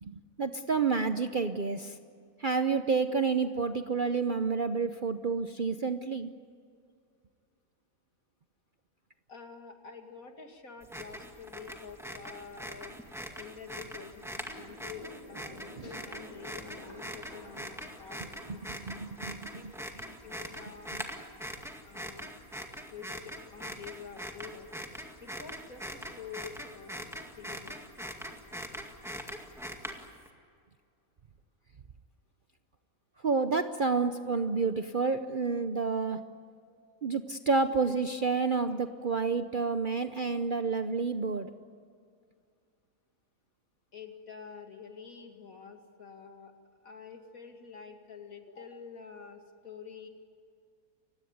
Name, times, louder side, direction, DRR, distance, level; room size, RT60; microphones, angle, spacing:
voice 1, 0.0-2.0 2.4-6.3 15.8-15.9 18.5-19.6 33.2-36.2 37.0-41.5, right 4 dB, 45° right, 9 dB, 0.8 m, -29 dB
voice 2, 9.3-13.0 13.3-18.7 19.5-21.0 21.8-22.3 22.9-24.7 25.2-27.1 27.4-27.8 43.9-46.6 46.8-50.1, left 6 dB, 65° left, 5 dB, 2.7 m, -48 dB
sound 1, 10.8-30.3, equal, ahead, 2.0 m, -42 dB
sound 2, 14.2-20.8, equal, 35° left, 5.8 m, -53 dB
29.5 x 16.5 x 9.6 m, 2.3 s
omnidirectional pair, 1.6 m